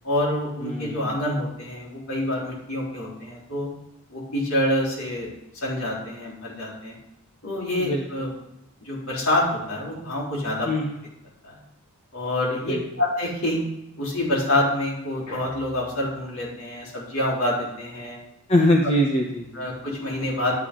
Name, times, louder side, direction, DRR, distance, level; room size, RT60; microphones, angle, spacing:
voice 1, 0.0-3.7 4.1-7.0 7.4-8.3 8.8-10.7 11.4-11.6 12.1-13.6 14.0-18.2 19.5-20.7, left 1 dB, 70° left, -4 dB, 4.0 m, -27 dB
voice 2, 0.6-1.1 7.8-8.0 10.7-10.9 12.7-12.8 18.5-19.6, left 1 dB, 25° left, 0 dB, 0.9 m, -22 dB
12.0 x 9.2 x 3.8 m, 0.86 s
head